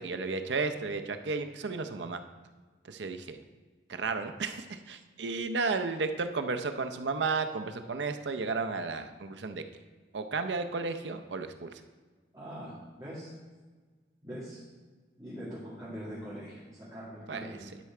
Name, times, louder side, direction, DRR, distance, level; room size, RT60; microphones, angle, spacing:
voice 1, 0.0-2.2 2.8-3.4 3.9-9.6 10.1-11.8 17.3-17.7, right 4 dB, 85° right, 8 dB, 0.6 m, -33 dB
voice 2, 12.3-13.3 14.2-14.6 15.2-17.7, equal, 20° right, -11 dB, 2.1 m, -42 dB
11.5 x 4.3 x 4.8 m, 1.4 s
head